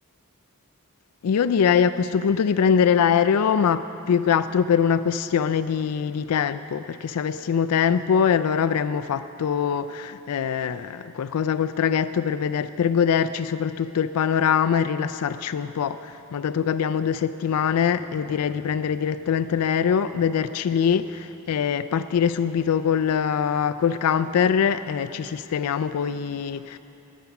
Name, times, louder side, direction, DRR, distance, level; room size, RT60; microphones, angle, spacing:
voice 1, 1.2-26.8, left 7 dB, 90° left, 11 dB, 0.4 m, -23 dB
22.0 x 8.3 x 5.9 m, 2.9 s
head